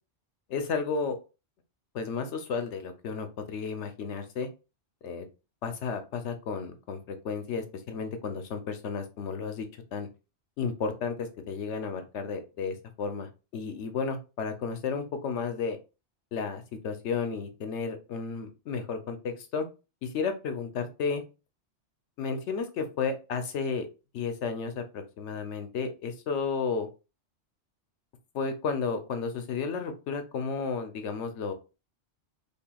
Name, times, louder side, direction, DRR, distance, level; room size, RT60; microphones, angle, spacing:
voice 1, 0.5-1.2 1.9-4.5 5.0-5.3 5.6-10.1 10.6-15.8 16.3-19.7 20.0-21.2 22.2-23.9 24.1-26.9 28.3-31.5, left 5 dB, 90° left, 7 dB, 1.0 m, -33 dB
5.4 x 2.2 x 2.3 m, 0.30 s
omnidirectional pair, 1.2 m